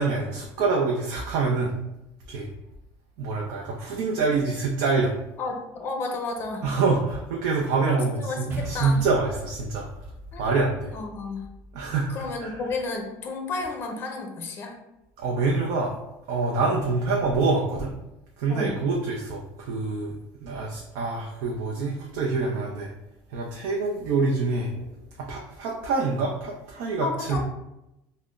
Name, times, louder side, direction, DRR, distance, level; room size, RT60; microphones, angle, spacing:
voice 1, 0.0-1.7 2.3-2.5 3.2-5.1 6.6-9.9 10.4-10.9 11.7-12.1 12.4-12.5 15.2-15.9 16.3-17.9 18.4-20.1 20.4-22.9 23.3-24.8 25.2-27.4, right 3 dB, 75° right, -2 dB, 0.6 m, -26 dB
voice 2, 5.4-6.7 7.9-9.0 10.3-10.5 10.9-11.5 12.1-14.7 18.5-18.8 27.0-27.4, left 3 dB, 30° left, 3 dB, 0.6 m, -32 dB
sound 1, 8.5-13.0, equal, 30° right, 0.5 m, -42 dB
5.6 x 2.1 x 2.4 m, 0.91 s
cardioid pair, 170°, 8 cm